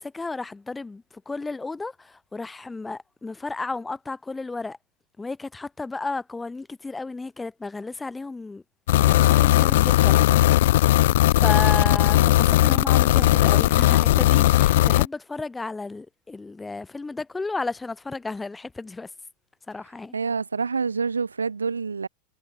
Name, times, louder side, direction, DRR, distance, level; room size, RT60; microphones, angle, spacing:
voice 1, 0.0-4.8 5.2-8.6 9.0-10.3 11.3-19.1 19.7-20.2, left 3 dB, 10° left, 2.7 m, -33 dB
sound 1, 8.9-15.1, left 15 dB, 55° left, 0.5 m, -18 dB
voice 2, 20.1-22.1, right 5 dB, 75° right, 1.5 m, -27 dB
figure-of-eight pair, 90°, 0 cm